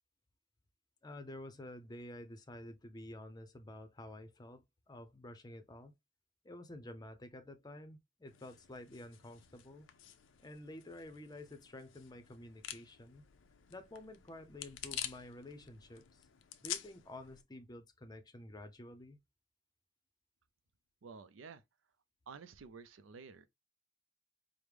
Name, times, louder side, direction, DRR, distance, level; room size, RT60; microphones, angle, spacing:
voice 1, 1.0-5.9 6.4-9.9 10.4-13.2 13.7-16.3 16.6-19.2, left 1 dB, 20° left, 0.6 m, -50 dB
sound 1, 8.3-17.4, left 11 dB, 80° left, 0.5 m, -49 dB
voice 2, 21.0-21.6 22.3-23.5, right 5 dB, 90° right, 0.5 m, -51 dB
4.9 x 2.1 x 3.3 m
head